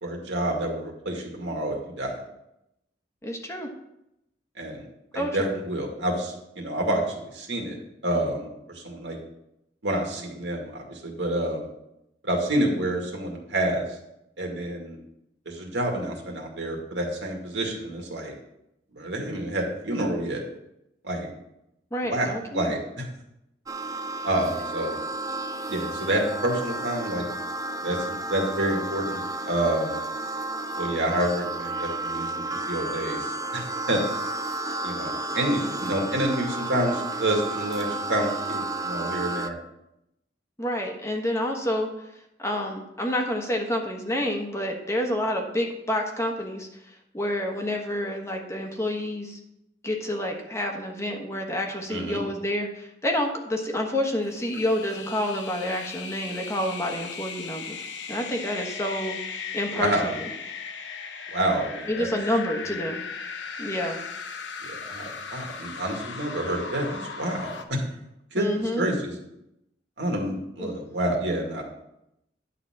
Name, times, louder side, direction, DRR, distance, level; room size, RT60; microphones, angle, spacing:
voice 1, 0.0-2.2 4.6-4.8 5.1-7.0 7.3-7.7 8.0-9.2 9.8-11.6 12.2-13.8 14.4-15.0 15.5-18.3 18.9-20.4 21.0-21.3 22.1-23.0 24.2-25.0 25.7-27.3 27.8-30.0 30.8-34.0 34.8-39.6 51.9-52.2 59.7-60.1 61.3-62.1 62.7-62.8 64.6-67.8 68.3-68.5 68.8-69.1 70.0-71.6, right 1 dB, 75° right, 0 dB, 2.2 m, -28 dB
voice 2, 3.2-3.7 5.1-5.5 21.9-22.7 40.6-41.9 42.4-46.7 47.1-49.4 49.8-57.8 58.1-60.3 61.9-63.0 63.6-64.0 68.3-68.9 70.6-70.7, left 1 dB, 15° left, 2 dB, 1.3 m, -28 dB
sound 1, 23.7-39.5, right 2 dB, 20° right, 0.5 m, -32 dB
sound 2, 54.2-67.6, left 5 dB, 90° left, 0.9 m, -37 dB
10.5 x 4.1 x 7.4 m, 0.82 s
head